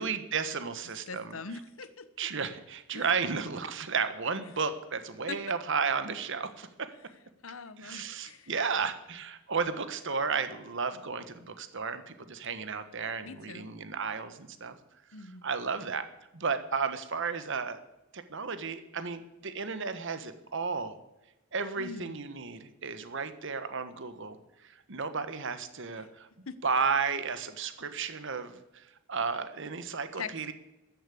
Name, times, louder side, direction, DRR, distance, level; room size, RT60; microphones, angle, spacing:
voice 1, 0.0-1.4 2.2-6.9 7.8-14.7 15.4-16.1 16.3-17.8 18.1-21.0 21.5-24.4 24.9-26.3 26.6-30.5, right 5 dB, 60° right, 11 dB, 1.3 m, -33 dB
voice 2, 1.1-2.3 2.9-3.0 5.3-5.4 7.4-8.5 13.2-13.7 15.1-15.5 21.8-22.2 26.0-26.1 26.5-26.6 30.2-30.5, left 4 dB, 75° left, 14 dB, 1.0 m, -42 dB
14.0 x 8.8 x 8.4 m, 0.97 s
head